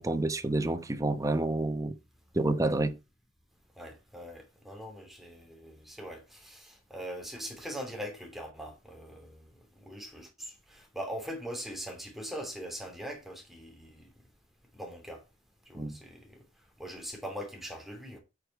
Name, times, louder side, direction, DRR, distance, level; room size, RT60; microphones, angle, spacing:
voice 1, 0.0-1.9 2.3-3.0 15.7-16.0, right 2 dB, 20° right, 0.9 m, -29 dB
voice 2, 3.8-9.5 9.8-14.1 14.7-15.2 15.7-16.4 16.8-18.2, equal, ahead, 2.8 m, -42 dB
8.8 x 5.2 x 4.6 m
head